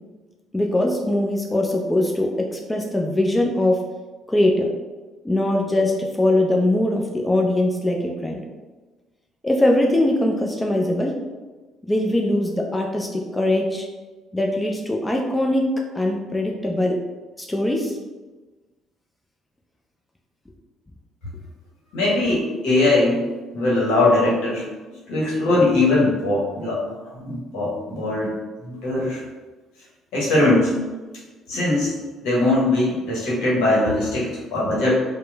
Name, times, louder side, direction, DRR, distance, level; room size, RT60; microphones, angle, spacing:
voice 1, 0.5-3.8 4.3-4.7 5.2-8.4 9.4-11.1 11.8-13.9 14.3-15.6 15.9-17.0 17.4-18.0, left 1 dB, 15° left, 1 dB, 0.4 m, -21 dB
voice 2, 21.9-23.2 23.5-24.6 25.1-26.8 27.1-28.3 28.6-29.2 30.1-30.7 31.5-31.9 32.2-34.9, left 2 dB, 75° left, -6 dB, 0.9 m, -20 dB
2.9 x 2.1 x 2.2 m, 1.2 s
hypercardioid pair, 55°, 0 cm